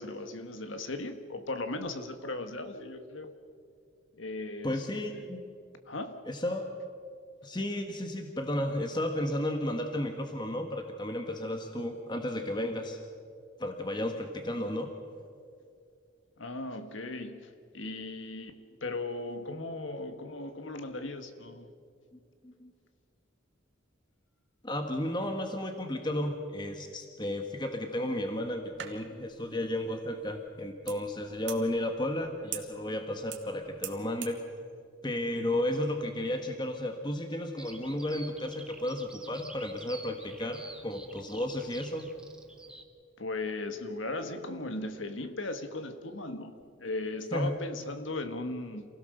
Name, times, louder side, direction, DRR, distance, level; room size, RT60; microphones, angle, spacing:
voice 1, 0.0-3.3 4.2-4.9 5.1-5.3 5.9-6.2 16.4-21.7 43.2-48.9, left 2 dB, 75° left, 8 dB, 1.6 m, -37 dB
voice 2, 4.6-5.4 6.3-6.7 7.4-13.0 13.6-14.9 22.4-22.7 24.6-34.4 35.0-42.1 47.3-47.5, left 1 dB, 20° left, 5 dB, 1.4 m, -33 dB
sound 1, 28.3-34.4, right 11 dB, 65° right, 1.9 m, -46 dB
Bird vocalization bird call bird song, 37.6-42.8, right 2 dB, 5° right, 1.2 m, -49 dB
28.0 x 16.5 x 6.6 m, 2.3 s
head